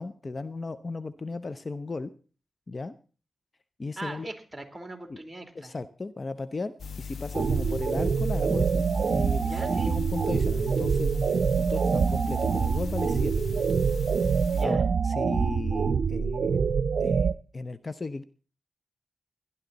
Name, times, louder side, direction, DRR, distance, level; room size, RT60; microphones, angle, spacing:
voice 1, 0.0-2.1 2.7-2.9 3.8-4.3 5.1-5.2 5.5-9.5 9.9-13.6 14.3-16.7 17.0-18.2, left 3 dB, 40° left, 14 dB, 0.7 m, -36 dB
voice 2, 4.0-5.7 9.4-9.9 14.5-14.8, right 2 dB, 20° right, 5 dB, 3.0 m, -40 dB
sound 1, 6.8-14.7, left 5 dB, 85° left, 1.7 m, -38 dB
sound 2, 7.3-17.3, right 6 dB, 70° right, 0.7 m, -25 dB
18.0 x 11.5 x 4.1 m, 0.38 s
cardioid pair, 60°, 0 cm